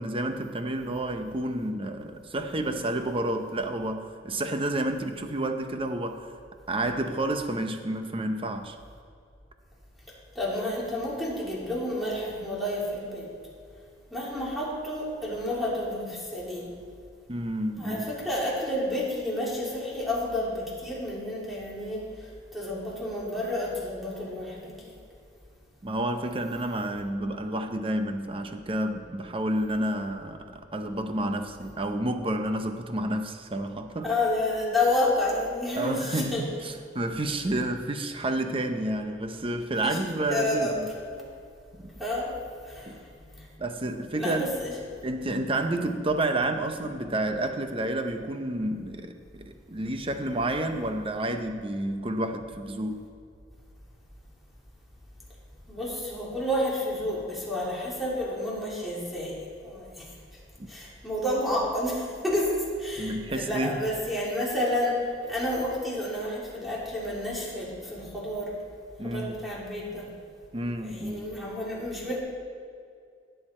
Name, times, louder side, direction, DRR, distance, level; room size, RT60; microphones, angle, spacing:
voice 1, 0.0-6.3 6.7-8.8 17.3-18.0 25.8-34.1 35.8-40.9 41.7-41.9 42.9-43.0 43.6-44.5 45.0-53.0 60.6-60.7 63.0-63.8 69.0-69.4 70.5-71.3, right 1 dB, 30° right, 7 dB, 0.8 m, -30 dB
voice 2, 10.3-13.3 14.1-16.7 17.8-22.1 22.5-24.9 34.0-36.5 39.8-40.0 40.2-40.8 41.1-41.2 42.0-42.4 42.7-42.9 44.1-44.8 55.7-59.4 59.6-60.1 60.7-65.0 65.3-68.5 69.0-70.1 70.8-72.2, left 1 dB, ahead, -6 dB, 3.1 m, -30 dB
17.0 x 8.0 x 4.4 m, 2.3 s
head